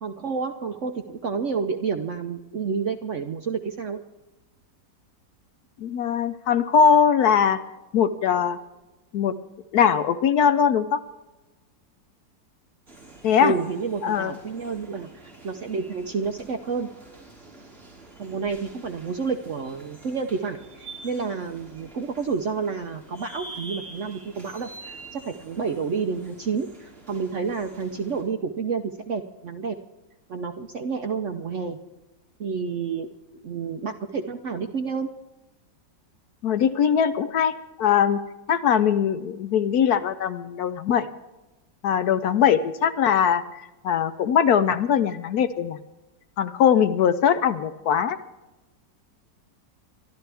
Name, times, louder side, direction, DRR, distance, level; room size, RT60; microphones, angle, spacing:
voice 1, 0.0-4.0 13.4-16.9 18.2-29.8 30.3-31.8 32.4-33.1 33.4-35.1, right 5 dB, 60° right, 6 dB, 0.8 m, -29 dB
voice 2, 5.8-7.6 7.9-8.6 9.1-9.3 9.7-11.0 13.2-13.6 14.0-14.3 36.4-37.5 37.8-38.2 38.5-41.1 41.8-45.8 46.4-48.2, left 7 dB, 65° left, 11 dB, 1.0 m, -21 dB
sound 1, 12.9-28.2, right 3 dB, 40° right, 4.4 m, -46 dB
24.0 x 12.5 x 3.4 m, 1.0 s
omnidirectional pair, 2.0 m